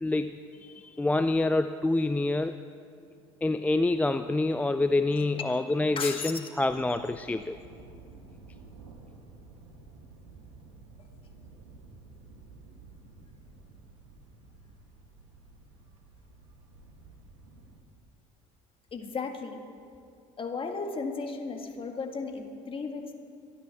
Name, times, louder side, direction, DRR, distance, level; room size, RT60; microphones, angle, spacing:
voice 1, 0.0-2.6 3.4-7.6, left 2 dB, 10° left, 10 dB, 0.4 m, -27 dB
voice 2, 5.4-6.5 18.9-19.6 20.4-23.1, left 4 dB, 35° left, 4 dB, 1.9 m, -35 dB
Thunder, 6.6-17.8, right 3 dB, 85° right, 1.5 m, -52 dB
25.0 x 10.0 x 3.6 m, 2.4 s
hypercardioid pair, 70°, 16 cm